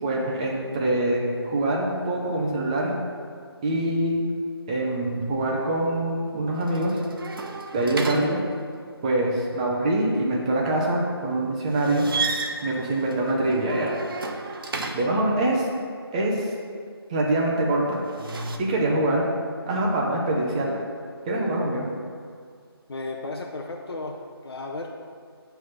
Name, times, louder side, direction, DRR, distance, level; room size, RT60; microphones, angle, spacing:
voice 1, 0.0-2.9 3.6-4.3 4.7-7.0 7.7-8.4 9.0-12.1 12.6-13.9 14.9-15.7 16.1-16.5 17.1-18.0 18.6-19.3 19.7-20.8 21.3-21.9, right 1 dB, 15° right, -2 dB, 0.7 m, -24 dB
sound 1, 6.6-8.9 11.7-15.3 17.9-18.6, right 3 dB, 60° right, 0.7 m, -33 dB
voice 2, 22.9-24.2 24.4-24.9, left 2 dB, 70° left, 1 dB, 0.7 m, -34 dB
7.6 x 3.4 x 5.6 m, 2.1 s
figure-of-eight pair, 160°, 13 cm